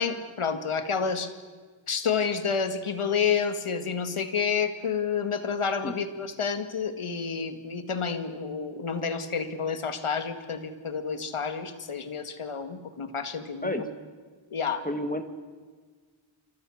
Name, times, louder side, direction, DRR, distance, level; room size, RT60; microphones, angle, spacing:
voice 1, 0.0-1.3 1.9-13.8 14.5-14.9, left 6 dB, 80° left, 9 dB, 2.0 m, -29 dB
voice 2, 14.8-15.2, left 1 dB, 15° left, 8 dB, 1.8 m, -30 dB
29.5 x 25.0 x 6.5 m, 1.5 s
wide cardioid pair, 70°, 49 cm